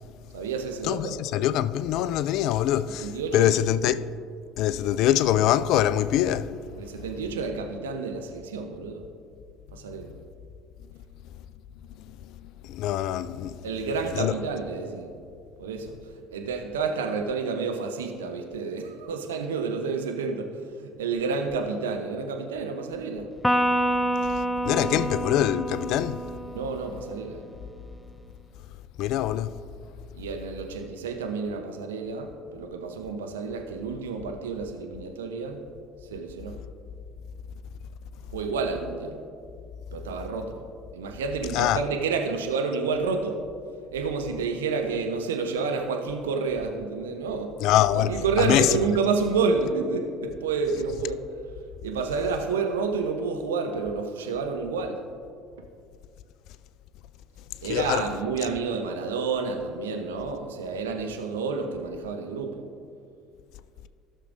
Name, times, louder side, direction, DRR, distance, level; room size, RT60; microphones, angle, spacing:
voice 1, 0.3-1.2 3.0-3.5 3.8-3.9 6.8-9.0 9.7-10.1 13.6-15.1 15.6-23.3 24.7-25.1 26.5-27.4 30.1-35.7 36.1-36.5 38.3-39.2 39.9-40.6 40.9-43.4 43.9-47.5 47.9-51.2 51.8-55.0 57.6-62.6, right 4 dB, 80° right, 0.8 m, -29 dB
voice 2, 0.8-4.1 4.6-6.6 12.7-13.5 14.2-14.3 24.7-26.2 29.0-29.5 41.5-41.8 47.6-48.7 57.7-58.1, left 12 dB, 60° left, 0.3 m, -24 dB
Electric guitar, 23.4-27.0, right 1 dB, 5° left, 0.5 m, -27 dB
16.5 x 6.5 x 2.6 m
hypercardioid pair, 65°, 0 cm